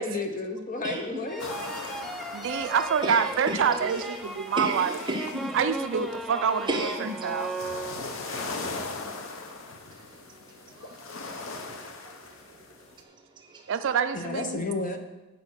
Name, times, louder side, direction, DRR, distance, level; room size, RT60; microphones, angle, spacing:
voice 1, 0.0-1.5 14.1-15.0, left 3 dB, 40° left, 6 dB, 0.8 m, -32 dB
sound 1, 1.3-8.4, right 1 dB, ahead, 0.5 m, -37 dB
sound 2, 1.4-13.0, left 3 dB, 65° left, 0.9 m, -40 dB
voice 2, 1.4-2.0 2.6-4.1 4.5-5.6 6.7-7.5 8.2-9.6 9.9-12.2 12.5-12.6 13.4-13.7, right 1 dB, 20° right, 0 dB, 1.3 m, -36 dB
voice 3, 2.3-4.9 5.5-7.5 13.7-14.6, right 7 dB, 60° right, 9 dB, 0.4 m, -27 dB
8.4 x 5.0 x 6.4 m, 1.1 s
head